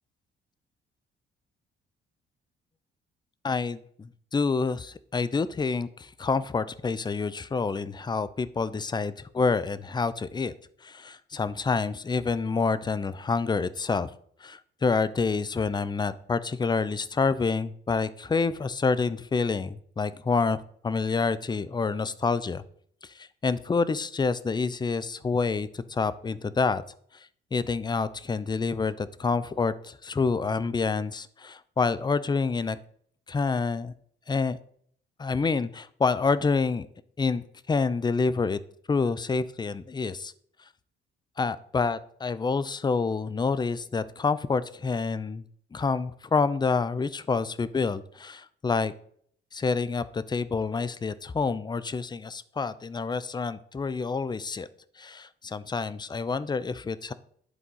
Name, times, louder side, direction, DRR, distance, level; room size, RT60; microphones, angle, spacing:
voice 1, 3.4-10.5 10.8-14.1 14.4-20.6 20.8-22.6 23.1-26.8 27.1-32.8 33.3-33.9 34.3-34.6 35.2-36.9 37.2-38.6 38.9-40.3 41.4-45.4 45.7-48.9 49.5-54.7 55.0-57.1, left 4 dB, 20° left, 16 dB, 0.5 m, -28 dB
11.0 x 3.9 x 5.5 m, 0.62 s
cardioid pair, 90°, 20 cm